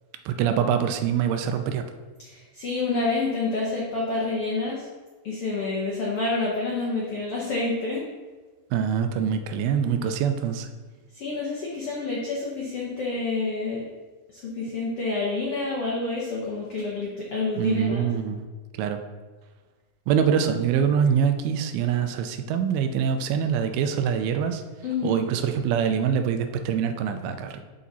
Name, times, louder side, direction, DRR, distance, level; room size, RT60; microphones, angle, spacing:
voice 1, 0.3-1.8 8.7-10.7 17.6-18.5 18.8-19.0 20.1-24.6 25.0-27.6, right 7 dB, 85° right, 7 dB, 2.4 m, -24 dB
voice 2, 2.2-4.9 5.2-8.0 11.1-13.8 14.3-18.1 24.8-25.2, left 3 dB, 75° left, -4 dB, 1.3 m, -28 dB
10.0 x 4.1 x 4.1 m, 1.3 s
omnidirectional pair, 4.3 m